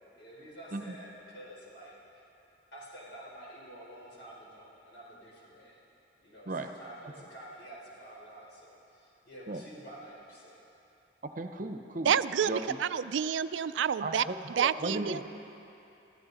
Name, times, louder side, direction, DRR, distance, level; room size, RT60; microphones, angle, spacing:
voice 1, 0.1-1.9 2.7-5.8 6.2-10.6, right 1 dB, 65° left, -5 dB, 4.6 m, -49 dB
voice 2, 11.2-12.1 12.4-12.8 14.0-15.3, right 2 dB, 45° right, 6 dB, 0.8 m, -35 dB
voice 3, 12.0-12.5 12.8-14.2 14.6-15.2, right 8 dB, 85° right, 14 dB, 0.4 m, -28 dB
23.0 x 14.0 x 4.1 m, 2.8 s
head